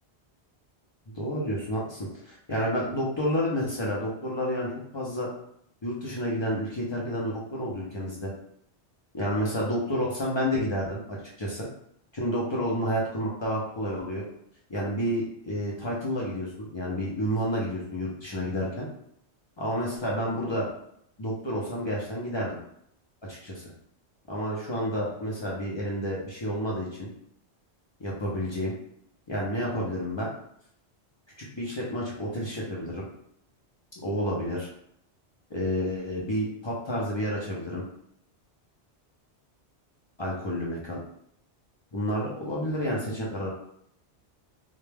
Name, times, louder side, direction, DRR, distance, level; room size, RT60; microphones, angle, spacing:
voice 1, 1.1-5.3 5.8-8.3 9.1-11.0 11.4-11.7 12.1-14.3 14.7-18.9 19.6-20.7 21.2-22.6 23.2-23.6 24.3-27.1 28.0-28.7 29.3-30.3 31.5-33.1 34.0-34.7 35.5-37.8 40.2-41.0 41.9-43.5, equal, 45° left, -5 dB, 0.3 m, -30 dB
2.2 x 2.1 x 3.2 m, 0.70 s
omnidirectional pair, 1.2 m